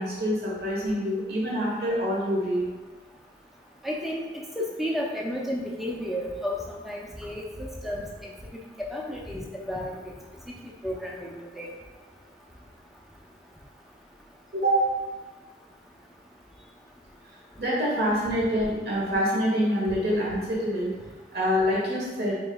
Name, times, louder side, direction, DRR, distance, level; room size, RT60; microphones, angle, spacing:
voice 1, 0.0-2.6 14.5-14.8 17.6-20.9 21.3-22.3, equal, 65° right, -6 dB, 1.2 m, -26 dB
voice 2, 3.8-4.2 4.6-8.3 8.9-9.4 9.7-10.0 10.8-11.7, equal, ahead, -3 dB, 0.5 m, -32 dB
5.2 x 3.5 x 2.3 m, 1.3 s
head